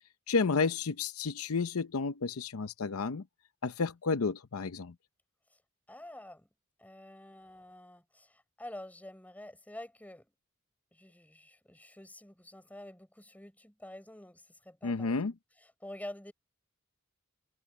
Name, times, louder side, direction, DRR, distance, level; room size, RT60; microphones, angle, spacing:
voice 1, 0.3-3.2 3.6-4.9 14.8-15.3, left 4 dB, 85° left, 0.7 m, -31 dB
voice 2, 5.9-6.5 6.8-10.3 10.9-15.3 15.6-16.3, left 1 dB, 5° left, 4.7 m, -48 dB
head